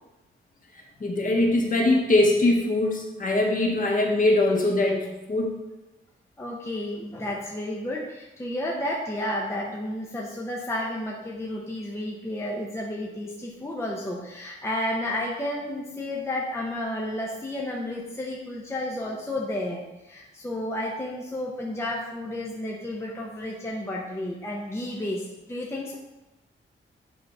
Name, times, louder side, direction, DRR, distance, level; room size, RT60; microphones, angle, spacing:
voice 1, 1.0-5.6, left 2 dB, 40° left, 0 dB, 1.4 m, -22 dB
voice 2, 6.4-26.0, left 1 dB, 10° left, -2 dB, 0.9 m, -32 dB
8.5 x 3.2 x 5.3 m, 1.0 s
wide cardioid pair, 120°, 21 cm